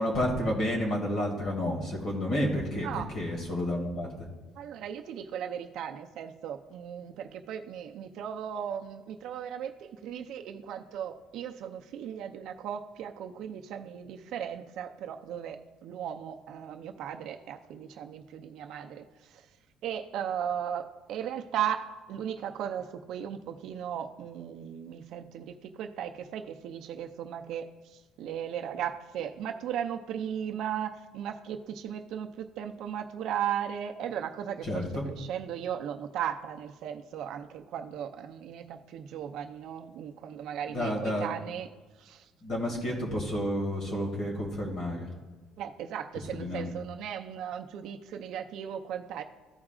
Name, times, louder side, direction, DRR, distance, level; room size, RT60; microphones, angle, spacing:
voice 1, 0.0-4.1 34.6-35.0 40.7-41.3 42.4-45.1 46.3-46.7, left 1 dB, 40° left, -1 dB, 2.2 m, -30 dB
voice 2, 2.8-3.1 4.6-19.5 19.8-41.7 42.0-42.3 45.6-49.2, right 9 dB, 55° right, 5 dB, 0.6 m, -37 dB
14.5 x 4.9 x 2.4 m, 1.3 s
cardioid pair, 170°, 0 cm